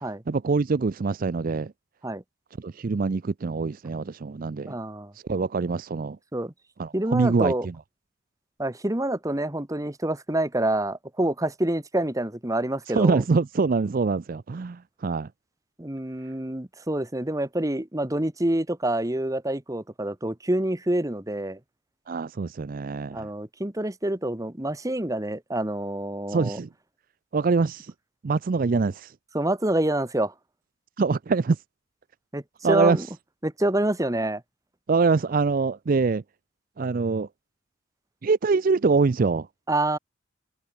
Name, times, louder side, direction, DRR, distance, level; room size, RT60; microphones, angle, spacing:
voice 1, 0.3-1.7 2.6-4.8 5.1-6.2 6.8-7.7 12.9-15.3 22.1-23.3 26.3-26.7 27.3-27.9 28.2-29.1 31.0-31.6 32.6-33.0 34.9-36.2 36.8-37.3 38.2-39.5, right 4 dB, 45° right, 0.4 m, -24 dB
voice 2, 4.7-5.1 6.3-6.5 6.9-7.7 8.6-13.2 15.8-21.6 23.1-26.6 29.3-30.3 32.3-32.4 32.7-33.1 33.4-34.4 39.7-40.0, right 1 dB, 15° right, 1.2 m, -27 dB
head